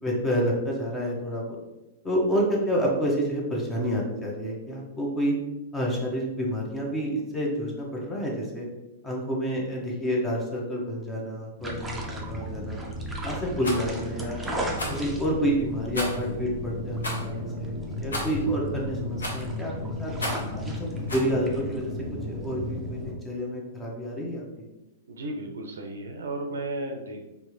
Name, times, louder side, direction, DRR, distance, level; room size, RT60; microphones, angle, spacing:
voice 1, 0.0-1.6 2.0-5.3 5.7-8.7 9.0-12.8 13.2-14.4 14.9-19.7 20.0-20.1 20.6-21.9 22.3-24.6, equal, 15° left, -2 dB, 1.0 m, -29 dB
sound 1, 11.6-23.1, equal, 10° right, 0.7 m, -34 dB
Rattle, 13.6-13.8 14.7-15.0 15.9-16.3 17.0-17.3 18.1-18.4 19.2-19.5 20.2-20.5 21.1-21.3, left 1 dB, 80° left, 1.2 m, -33 dB
voice 2, 25.1-27.2, right 2 dB, 75° right, 3 dB, 0.6 m, -34 dB
4.5 x 2.7 x 3.2 m, 1.0 s
hypercardioid pair, 110°, 0 cm